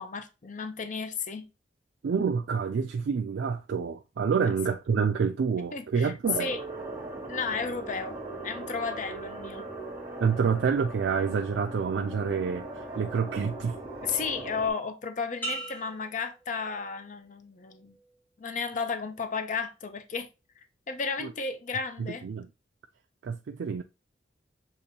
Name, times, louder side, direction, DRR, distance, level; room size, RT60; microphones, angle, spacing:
voice 1, 0.0-1.5 4.4-4.5 5.7-6.1 6.4-6.6 7.3-8.2 8.4-9.7 14.0-18.0 18.4-20.3 20.6-22.3, left 5 dB, 45° left, 0.6 m, -33 dB
voice 2, 2.0-6.5 10.2-13.8 21.2-21.3 22.0-22.5 23.2-23.8, right 6 dB, 80° right, 0.4 m, -28 dB
sound 1, 6.2-14.7, right 2 dB, 15° right, 1.8 m, -39 dB
sound 2, 15.4-17.2 17.7-18.2, right 2 dB, 10° left, 0.8 m, -40 dB
6.7 x 2.5 x 2.8 m
head